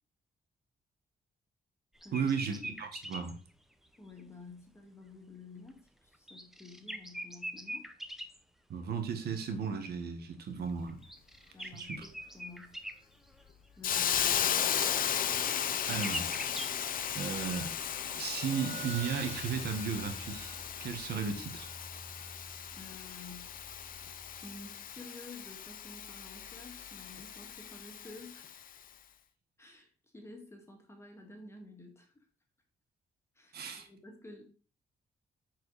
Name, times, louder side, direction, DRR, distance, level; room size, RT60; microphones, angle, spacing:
sound 1, 2.0-3.3 4.2-4.3 6.1-8.4 10.9-13.0 13.3-13.4 14.9-15.0 15.4-16.7, equal, ahead, 0.8 m, -42 dB
voice 1, 2.1-3.3 8.7-11.0 11.6-12.0 15.9-17.7 18.1-21.7 33.5-33.9, right 6 dB, 80° right, 1.6 m, -35 dB
voice 2, 4.0-7.9 11.5-12.7 13.8-14.9 22.8-23.5 24.4-28.7 29.6-32.2 33.4-34.5, left 3 dB, 15° left, 2.1 m, -51 dB
Hiss, 13.8-28.6, left 9 dB, 60° left, 0.7 m, -36 dB
sound 2, 17.9-25.0, right 4 dB, 45° right, 1.3 m, -49 dB
9.2 x 4.9 x 4.9 m
wide cardioid pair, 155°, 16 cm